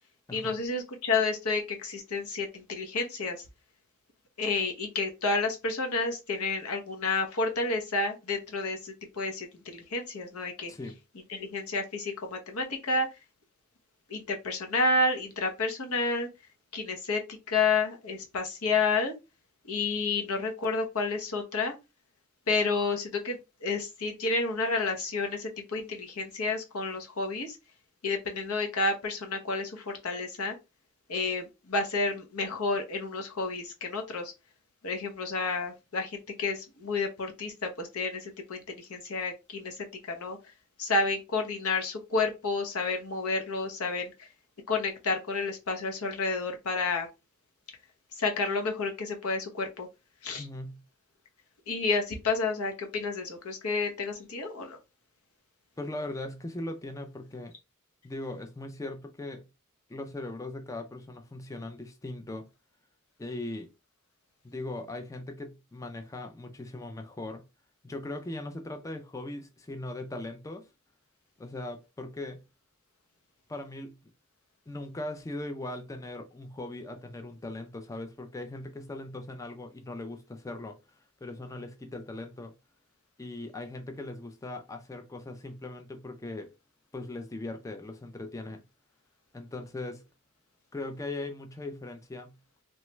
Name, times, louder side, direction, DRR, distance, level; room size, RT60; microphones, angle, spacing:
voice 1, 0.3-3.4 4.4-10.7 11.3-13.1 14.1-16.3 16.7-19.1 19.7-21.7 22.5-27.6 28.0-30.6 31.1-34.3 34.8-40.4 40.8-44.3 44.7-47.1 48.2-49.9 50.2-50.5 51.7-54.8, left 3 dB, 90° left, 0.8 m, -30 dB
voice 2, 50.3-50.8 55.8-57.5 58.0-59.5 59.9-62.5 63.2-63.7 64.4-67.4 67.8-70.7 71.4-72.4 73.5-74.0 74.7-82.5 83.2-86.5 86.9-88.6 89.3-90.1 90.7-92.4, left 2 dB, 15° left, 0.3 m, -39 dB
3.1 x 2.2 x 3.0 m
head